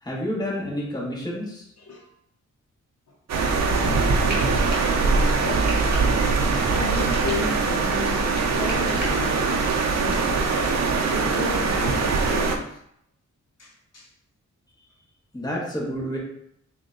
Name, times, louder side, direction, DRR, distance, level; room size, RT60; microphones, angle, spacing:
voice 1, 0.0-1.7 15.3-16.2, equal, 15° left, -4 dB, 1.1 m, -29 dB
voice 2, 1.8-2.1 3.7-6.3 6.7-8.2 8.6-9.5 10.0-10.5 11.1-12.8 13.6-14.1, left 3 dB, 55° left, -2 dB, 0.7 m, -34 dB
sound 1, 3.3-12.6, right 4 dB, 60° right, 0.5 m, -22 dB
Frying (food), 4.2-10.2, right 1 dB, 30° right, 0.9 m, -40 dB
3.6 x 2.2 x 3.7 m, 0.73 s
wide cardioid pair, 135°, 31 cm